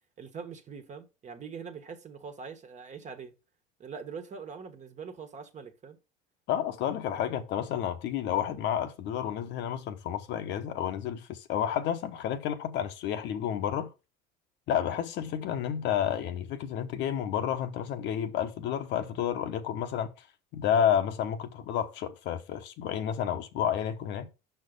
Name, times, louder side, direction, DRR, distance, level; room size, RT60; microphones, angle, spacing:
voice 1, 0.2-3.3 3.8-6.0, right 6 dB, 35° right, 1.5 m, -43 dB
voice 2, 6.5-13.9 14.7-20.3 20.5-24.3, left 9 dB, 60° left, 1.0 m, -30 dB
6.0 x 4.4 x 5.3 m
supercardioid pair, 90°, 20 cm